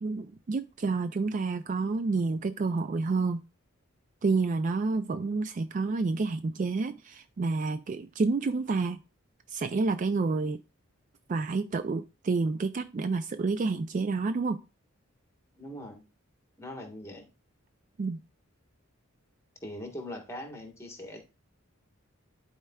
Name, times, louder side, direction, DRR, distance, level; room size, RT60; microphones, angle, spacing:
voice 1, 0.0-3.4 4.2-9.0 9.5-10.6 11.3-14.6 18.0-18.2, right 3 dB, 40° right, 0.3 m, -29 dB
voice 2, 15.6-16.0 16.6-17.3 19.6-21.2, left 1 dB, 15° left, 1.3 m, -41 dB
11.5 x 4.4 x 2.3 m
head